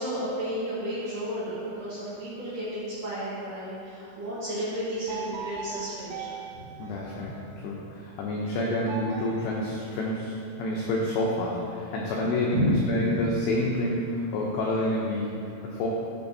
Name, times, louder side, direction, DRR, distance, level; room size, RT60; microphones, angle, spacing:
voice 1, 0.0-6.4 12.5-12.8, equal, 55° right, -11 dB, 2.4 m, -31 dB
sound 1, 5.1-7.7 8.8-10.6, right 6 dB, 80° right, 3.0 m, -41 dB
voice 2, 6.8-7.3 7.6-15.9, left 1 dB, 90° left, -3 dB, 2.4 m, -28 dB
14.0 x 6.0 x 2.7 m, 2.6 s
omnidirectional pair, 5.9 m